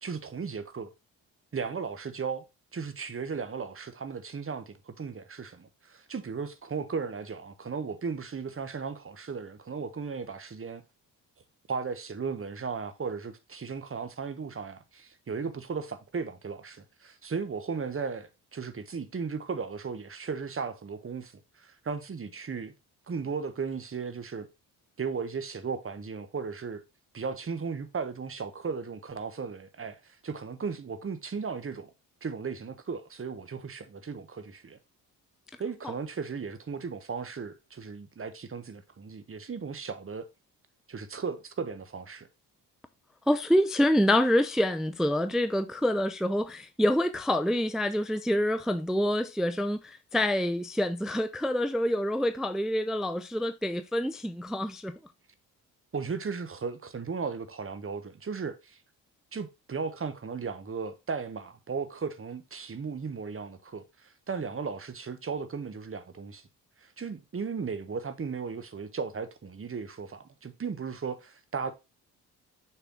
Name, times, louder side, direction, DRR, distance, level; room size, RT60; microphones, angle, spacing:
voice 1, 0.0-0.9 1.5-2.4 2.7-10.8 11.7-22.7 23.1-24.5 25.0-26.8 27.1-31.9 32.2-34.8 35.6-40.3 40.9-42.3 55.9-58.8 59.3-66.5 66.8-71.7, right 5 dB, 25° right, 1.2 m, -36 dB
voice 2, 43.3-55.0, left 1 dB, ahead, 0.5 m, -27 dB
6.8 x 4.6 x 3.7 m
figure-of-eight pair, 40°, 49 cm